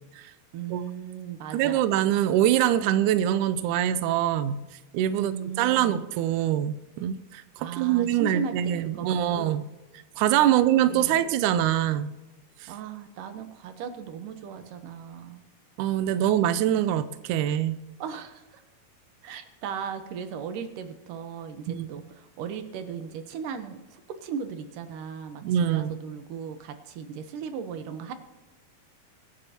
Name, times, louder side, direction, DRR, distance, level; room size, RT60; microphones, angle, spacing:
voice 1, 0.5-1.9 5.0-6.0 7.6-9.5 10.9-11.2 12.7-15.4 18.0-18.6 19.2-28.1, right 7 dB, 70° right, 8 dB, 2.4 m, -37 dB
voice 2, 1.5-4.6 4.9-9.6 10.2-12.1 12.6-12.7 15.8-17.8 21.7-21.9 25.4-25.9, right 11 dB, 85° right, 12 dB, 1.7 m, -24 dB
23.5 x 10.5 x 2.9 m, 1.1 s
omnidirectional pair, 4.3 m